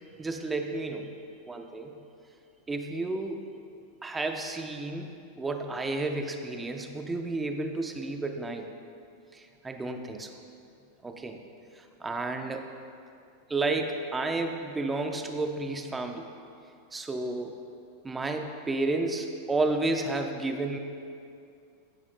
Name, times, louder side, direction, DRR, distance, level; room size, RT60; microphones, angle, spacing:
voice 1, 0.2-1.1 1.5-1.9 2.7-3.4 4.0-5.1 5.4-8.7 9.3-10.3 11.0-11.4 11.7-12.6 13.5-16.2 16.9-17.6 18.0-20.8, right 2 dB, 10° right, 4 dB, 0.7 m, -31 dB
15.5 x 7.1 x 2.2 m, 2.4 s
supercardioid pair, 135°, 0 cm